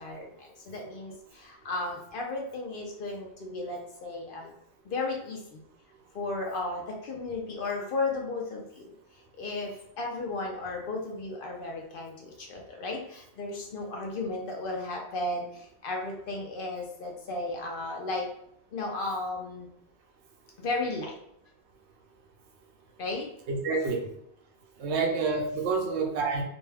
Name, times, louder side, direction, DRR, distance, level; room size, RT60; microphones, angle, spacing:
voice 1, 0.0-4.5 4.8-5.6 6.1-8.9 9.4-18.3 18.7-19.7 20.6-21.2 23.0-23.3, left 2 dB, 60° left, 1 dB, 0.7 m, -34 dB
voice 2, 23.5-24.1 24.8-26.4, right 4 dB, 85° right, 2 dB, 0.9 m, -28 dB
2.6 x 2.2 x 3.3 m, 0.74 s
omnidirectional pair, 1.1 m